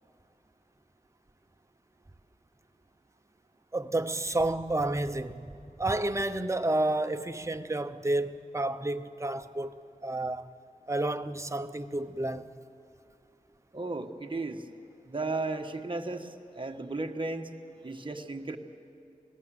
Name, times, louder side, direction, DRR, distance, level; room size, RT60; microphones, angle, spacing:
voice 1, 3.7-5.5 5.8-9.7 10.0-10.5 10.9-12.5, right 2 dB, 20° right, 0.8 m, -30 dB
voice 2, 13.7-14.7 15.1-17.5 17.8-18.6, right 3 dB, 35° right, 1.3 m, -35 dB
27.5 x 18.0 x 7.7 m
wide cardioid pair, 90°, 14 cm